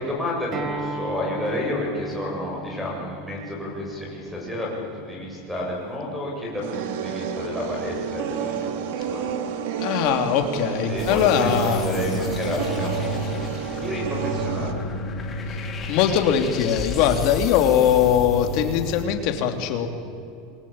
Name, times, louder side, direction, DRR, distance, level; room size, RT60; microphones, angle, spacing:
voice 1, 0.0-9.3 10.8-13.4 13.8-14.8, left 1 dB, ahead, -5 dB, 7.7 m, -30 dB
Acoustic guitar, 0.5-5.7, right 2 dB, 25° right, 2.1 m, -37 dB
sound 1, 6.6-14.7, right 7 dB, 65° right, 2.3 m, -30 dB
voice 2, 9.8-11.8 15.5-15.6 15.9-19.9, left 9 dB, 45° left, 5 dB, 3.0 m, -21 dB
sound 2, 11.0-19.0, left 3 dB, 20° left, 2.9 m, -31 dB
27.5 x 21.5 x 8.9 m, 2.5 s
supercardioid pair, 165°, 0 cm